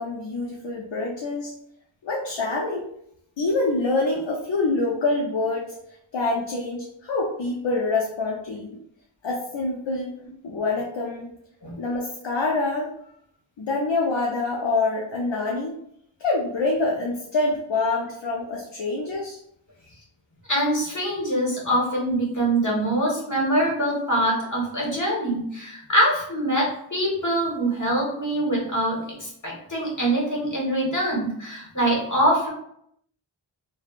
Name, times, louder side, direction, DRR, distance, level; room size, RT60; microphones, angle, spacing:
voice 1, 0.0-1.5 2.0-2.9 3.4-5.7 6.1-8.8 9.2-10.1 10.4-11.3 11.8-12.9 13.6-15.7 16.2-19.4, left 3 dB, 65° left, -2 dB, 0.6 m, -26 dB
voice 2, 20.5-32.5, right 1 dB, 40° left, -4 dB, 1.3 m, -24 dB
3.3 x 2.2 x 2.4 m, 0.72 s
wide cardioid pair, 45°, 47 cm